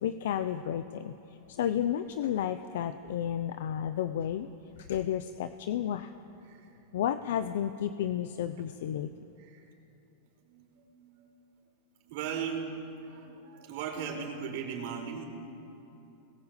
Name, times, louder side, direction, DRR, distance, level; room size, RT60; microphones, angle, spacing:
voice 1, 0.0-4.5 4.8-6.1 6.9-9.1, left 10 dB, 75° left, 11 dB, 0.8 m, -32 dB
voice 2, 9.4-9.7 10.4-11.3 12.0-15.2, right 6 dB, 60° right, 1 dB, 5.1 m, -38 dB
24.5 x 21.0 x 8.4 m, 2.9 s
supercardioid pair, 140°, 0 cm